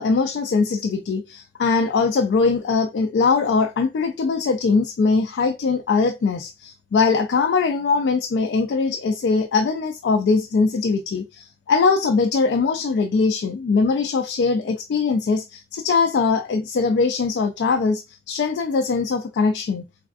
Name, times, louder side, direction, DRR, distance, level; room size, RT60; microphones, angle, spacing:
voice 1, 0.0-19.8, left 4 dB, 70° left, 0.3 m, -21 dB
3.3 x 2.4 x 2.3 m
head